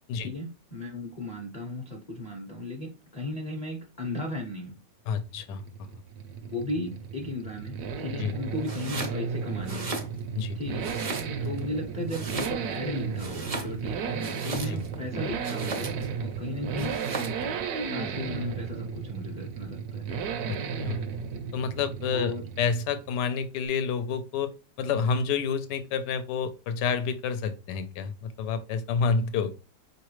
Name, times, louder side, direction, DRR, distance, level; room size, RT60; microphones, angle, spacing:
voice 1, 0.2-4.8 6.5-9.9 10.5-10.9 11.4-17.0 17.9-20.1 22.1-22.5, left 2 dB, 40° left, 0 dB, 0.6 m, -36 dB
voice 2, 5.1-5.6 8.2-8.3 10.3-10.6 14.7-14.8 20.8-21.0 21.5-24.5 24.8-29.5, left 6 dB, 80° left, 10 dB, 1.2 m, -29 dB
sound 1, 5.2-23.2, right 6 dB, 70° right, 1.0 m, -34 dB
Domestic sounds home sounds, 8.6-9.2 9.6-10.5 10.8-11.6 12.1-12.8 13.1-15.0 15.4-16.1 16.8-17.4, right 3 dB, 55° right, 0.4 m, -36 dB
4.7 x 3.2 x 3.0 m, 0.31 s
omnidirectional pair, 1.9 m